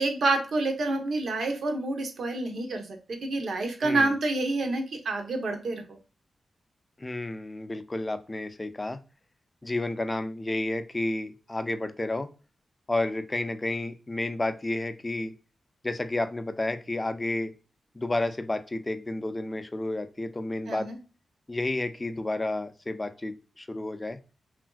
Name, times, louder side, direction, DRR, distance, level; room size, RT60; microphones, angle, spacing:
voice 1, 0.0-6.0 20.7-21.0, right 2 dB, 70° right, 5 dB, 0.7 m, -28 dB
voice 2, 3.8-4.1 7.0-9.0 9.6-12.3 12.9-15.3 15.8-17.5 17.9-20.9 21.5-24.2, left 2 dB, 20° left, 9 dB, 0.4 m, -31 dB
3.0 x 2.5 x 2.2 m, 0.34 s
wide cardioid pair, 100°, 0 cm